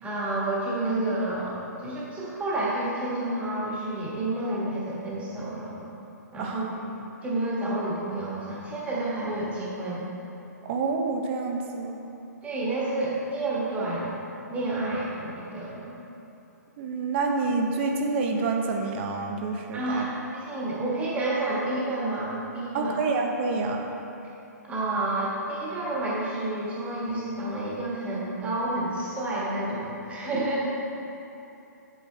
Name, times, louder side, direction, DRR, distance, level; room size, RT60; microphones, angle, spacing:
voice 1, 0.0-5.9 6.3-6.9 7.2-10.1 12.4-14.2 14.5-16.0 19.7-20.1 20.3-23.0 24.7-30.7, right 2 dB, 15° right, -7 dB, 1.7 m, -30 dB
voice 2, 10.6-12.0 16.8-20.1 22.7-23.8, right 3 dB, 40° right, 2 dB, 0.9 m, -28 dB
8.4 x 8.1 x 3.3 m, 2.9 s
hypercardioid pair, 145°, 10 cm